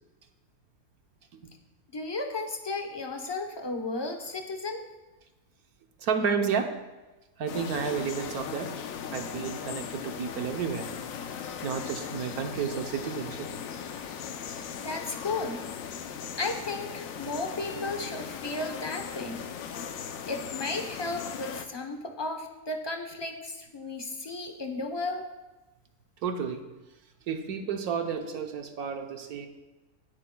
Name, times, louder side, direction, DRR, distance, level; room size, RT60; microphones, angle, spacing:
voice 1, 1.9-4.8 14.8-15.6 16.4-19.4 20.3-25.2, left 3 dB, 25° left, 4 dB, 0.6 m, -34 dB
voice 2, 6.0-6.7 7.4-8.7 9.1-10.9 11.6-14.0 16.2-16.3 26.2-26.6 27.3-29.5, right 6 dB, 70° right, 5 dB, 1.3 m, -31 dB
sound 1, 7.5-21.7, left 7 dB, 65° left, 1.0 m, -38 dB
18.0 x 8.3 x 2.2 m, 1.1 s
omnidirectional pair, 1.7 m